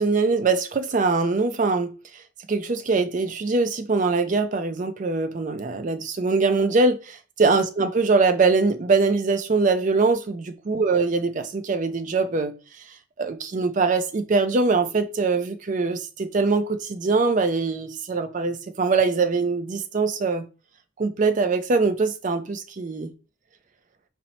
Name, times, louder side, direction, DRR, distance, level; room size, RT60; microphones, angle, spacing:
voice 1, 0.0-1.9 2.5-12.5 13.2-20.4 21.0-23.1, right 4 dB, 35° right, 0.4 m, -22 dB
4.2 x 2.1 x 4.1 m
head